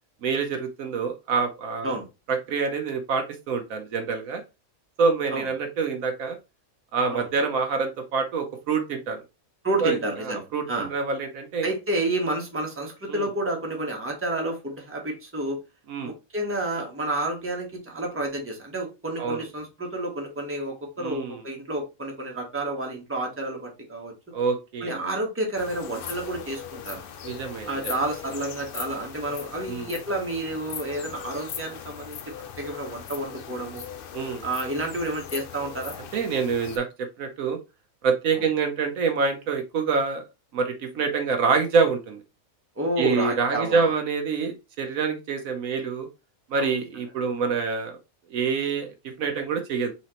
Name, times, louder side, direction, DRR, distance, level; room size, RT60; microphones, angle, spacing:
voice 1, 0.2-1.9 2.3-4.4 5.0-6.4 6.9-9.2 9.8-10.0 10.2-11.7 13.1-13.3 15.9-16.1 19.2-19.4 21.0-21.4 24.3-24.9 27.2-27.9 29.7-29.9 34.1-34.4 36.1-37.6 38.0-40.2 40.5-42.2 43.0-46.1 46.5-48.0 48.3-49.9, right 5 dB, 75° right, 6 dB, 1.2 m, -26 dB
voice 2, 9.6-10.9 11.6-15.6 16.0-24.1 24.8-27.0 27.7-32.2 32.6-33.8 34.4-36.0 38.3-38.4 42.8-43.9 46.5-46.8, right 1 dB, 10° right, 1 dB, 1.1 m, -30 dB
sound 1, 25.6-36.8, left 8 dB, 60° left, 0.6 m, -39 dB
4.2 x 3.9 x 2.9 m, 0.26 s
omnidirectional pair, 1.5 m